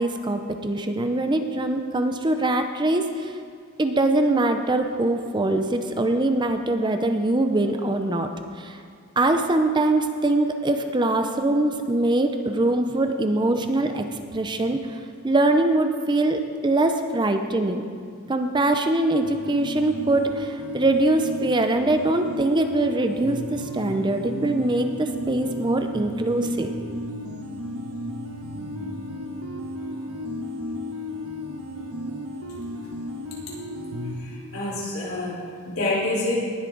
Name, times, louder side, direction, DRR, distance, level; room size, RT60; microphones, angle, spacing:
voice 1, 0.0-3.3 3.8-8.3 8.6-8.8 9.2-14.0 14.3-17.8 18.2-26.7, right 2 dB, 20° right, 6 dB, 0.6 m, -23 dB
sound 1, 19.2-34.1, equal, 85° right, 1.1 m, -33 dB
voice 2, 34.2-36.4, left 2 dB, 75° left, -6 dB, 3.6 m, -27 dB
19.0 x 8.1 x 3.9 m, 2.2 s
head